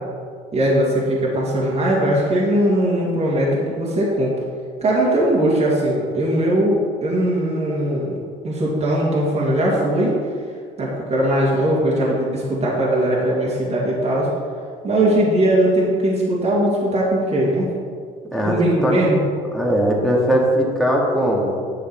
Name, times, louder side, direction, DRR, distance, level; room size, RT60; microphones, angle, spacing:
voice 1, 0.5-4.3 4.8-10.1 10.8-14.3 14.8-17.7 18.4-19.2, right 1 dB, 40° right, -6 dB, 2.3 m, -19 dB
voice 2, 18.3-18.9 19.5-21.6, equal, ahead, -3 dB, 2.2 m, -19 dB
10.0 x 6.5 x 4.7 m, 2.1 s
cardioid pair, 110°, 17 cm